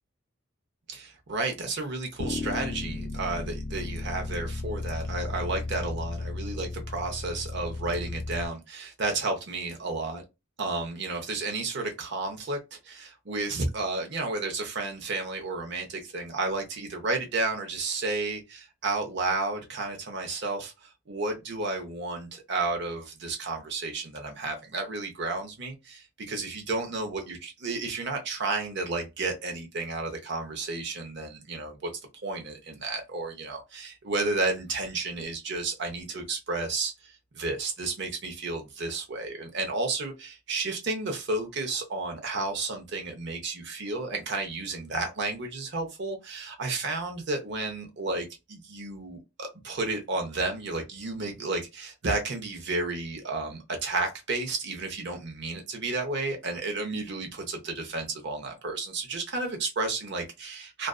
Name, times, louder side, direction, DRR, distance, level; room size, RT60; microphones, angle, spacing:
voice 1, 0.9-10.2 10.6-31.9 32.2-60.9, right 3 dB, 55° right, 0.6 m, -32 dB
sound 1, 2.2-8.5, left 2 dB, 35° left, 0.4 m, -34 dB
2.4 x 2.4 x 2.2 m
head